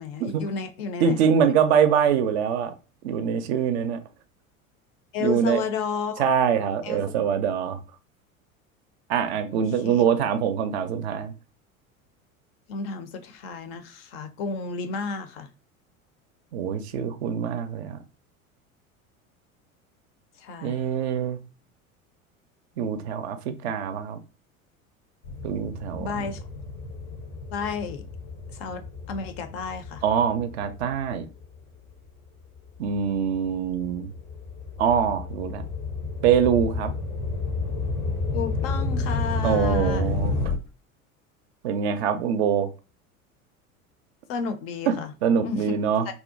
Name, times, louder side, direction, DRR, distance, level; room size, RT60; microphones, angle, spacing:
voice 1, 0.0-1.1 5.1-6.3 6.8-7.0 9.8-10.0 12.7-15.5 20.4-20.8 26.0-26.5 27.5-28.0 28.5-28.8 29.1-30.0 38.3-40.2 44.3-45.1 45.4-45.8, left 5 dB, 45° left, 0.4 m, -32 dB
voice 2, 1.0-2.8 3.0-4.0 5.2-5.6 6.2-7.8 9.1-11.3 16.5-18.0 20.6-21.4 22.8-24.2 25.4-26.2 30.0-31.3 32.8-34.1 34.8-35.6 36.2-36.9 39.4-40.3 41.6-42.7 44.9-46.1, right 7 dB, 50° right, 0.4 m, -24 dB
sound 1, 25.2-32.0 32.6-40.5, left 3 dB, 85° left, 0.7 m, -31 dB
2.6 x 2.1 x 2.4 m
figure-of-eight pair, 75°, 42 cm